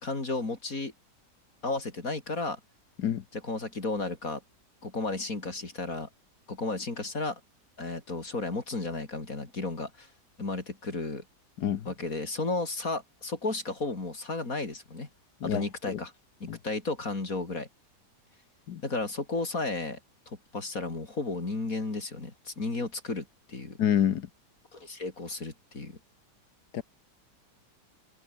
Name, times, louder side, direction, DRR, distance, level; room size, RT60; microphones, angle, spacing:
voice 1, 0.0-0.9 1.6-2.6 3.3-4.4 4.8-6.1 6.5-7.4 7.8-10.1 10.4-11.2 11.9-15.1 15.4-16.1 16.4-17.7 18.8-20.0 20.3-23.8 24.7-26.0, left 3 dB, 55° left, 4.0 m, -33 dB
voice 2, 11.6-11.9 15.4-15.6 15.9-16.0 16.5-16.6 18.7-18.8 23.8-24.3 26.7-26.8, left 10 dB, 70° left, 1.6 m, -27 dB
omnidirectional pair, 1.8 m